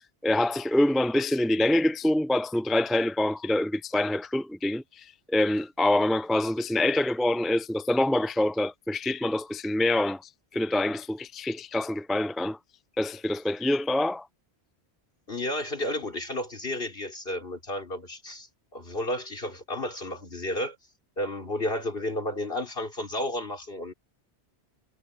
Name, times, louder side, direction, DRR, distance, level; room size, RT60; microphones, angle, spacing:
voice 1, 0.2-10.2 10.5-12.6 13.0-14.3, left 1 dB, ahead, 0.4 m, -25 dB
voice 2, 15.3-20.8 21.2-23.9, left 1 dB, 60° left, 4.1 m, -32 dB
omnidirectional pair, 1.1 m